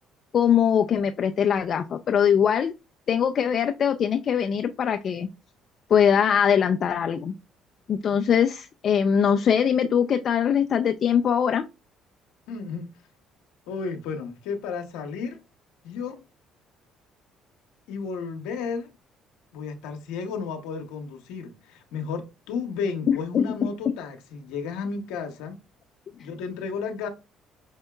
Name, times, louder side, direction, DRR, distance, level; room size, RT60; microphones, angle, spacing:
voice 1, 0.3-2.7 3.1-5.3 5.9-7.3 7.9-11.7 23.1-23.4, left 8 dB, 50° left, 0.3 m, -22 dB
voice 2, 12.5-12.9 13.7-15.4 15.8-16.2 17.9-18.9 19.5-25.6 26.2-27.1, left 5 dB, 85° left, 0.7 m, -33 dB
5.3 x 2.7 x 2.2 m
supercardioid pair, 85°, 0 cm